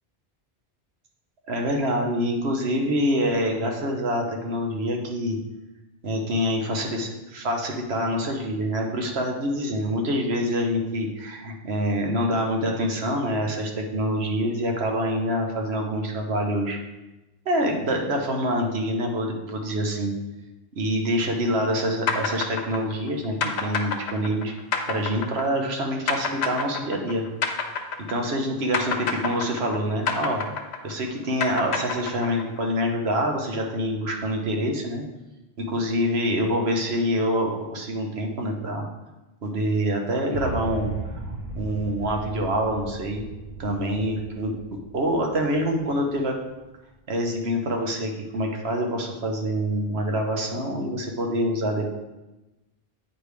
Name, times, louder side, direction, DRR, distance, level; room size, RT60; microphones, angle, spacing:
voice 1, 1.5-5.4 6.0-16.8 17.4-20.1 20.8-24.5 24.8-27.2 28.1-30.4 30.8-35.0 35.6-38.9 39.4-40.9 41.5-43.2 43.6-44.5 44.9-46.4 47.1-52.0, equal, 85° right, 2 dB, 1.3 m, -26 dB
sound 1, 22.1-28.4 28.7-32.6, left 5 dB, 85° left, 1.0 m, -28 dB
sound 2, 40.3-46.5, right 2 dB, 45° right, 1.2 m, -36 dB
8.5 x 4.9 x 3.4 m, 1.0 s
omnidirectional pair, 1.1 m